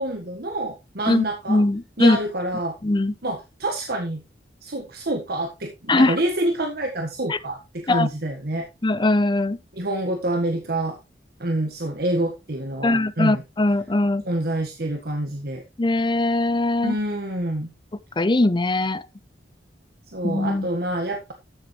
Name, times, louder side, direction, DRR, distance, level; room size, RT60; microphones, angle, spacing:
voice 1, 0.0-1.6 2.0-2.8 3.2-4.2 4.6-8.7 9.7-11.0 11.4-13.4 14.2-15.6 16.8-17.7 20.1-21.3, right 1 dB, 60° right, 1.6 m, -27 dB
voice 2, 1.1-2.2 2.8-3.1 5.9-6.2 7.3-7.4 7.9-8.1 8.8-9.6 12.8-14.2 15.8-17.0 18.2-19.0 20.2-20.7, left 2 dB, 25° left, 0.7 m, -21 dB
14.0 x 7.4 x 3.2 m
head